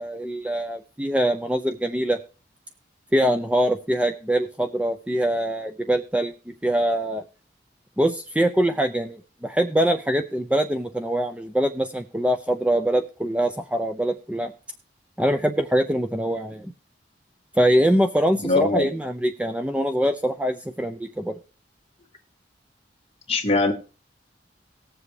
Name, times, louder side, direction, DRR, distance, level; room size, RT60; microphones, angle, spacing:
voice 1, 0.0-2.2 3.1-7.2 8.0-14.5 15.2-16.7 17.5-21.4, right 1 dB, 5° right, 7 dB, 0.5 m, -23 dB
voice 2, 18.4-18.9 23.3-23.7, left 2 dB, 30° left, 3 dB, 1.9 m, -21 dB
18.5 x 7.3 x 3.2 m, 0.35 s
head